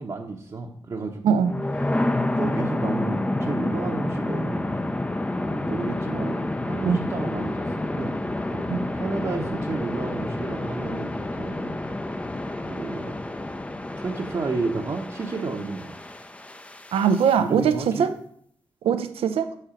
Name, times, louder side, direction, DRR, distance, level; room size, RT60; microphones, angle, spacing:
voice 1, 0.0-1.4 1.9-4.6 5.4-8.2 8.9-11.8 12.6-13.1 14.0-16.0 17.4-18.1, right 3 dB, 45° right, -1 dB, 0.9 m, -32 dB
sound 1, 1.4-17.3, left 1 dB, 15° left, 0.5 m, -29 dB
voice 2, 16.9-18.1 18.8-19.5, right 7 dB, 85° right, 10 dB, 0.6 m, -21 dB
6.5 x 4.4 x 5.0 m, 0.62 s
cardioid pair, 60°, 10 cm